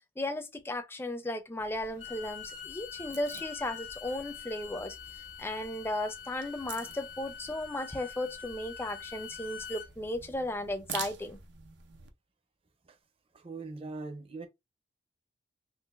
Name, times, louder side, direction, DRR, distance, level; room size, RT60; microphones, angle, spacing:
voice 1, 0.2-5.0 5.4-11.4, left 1 dB, 15° left, 0.4 m, -35 dB
sound 1, 1.6-12.1, right 7 dB, 80° right, 0.5 m, -48 dB
Bowed string instrument, 1.8-9.9, left 8 dB, 80° left, 0.8 m, -45 dB
voice 2, 13.3-14.5, right 3 dB, 30° right, 0.6 m, -41 dB
3.8 x 2.5 x 2.4 m
head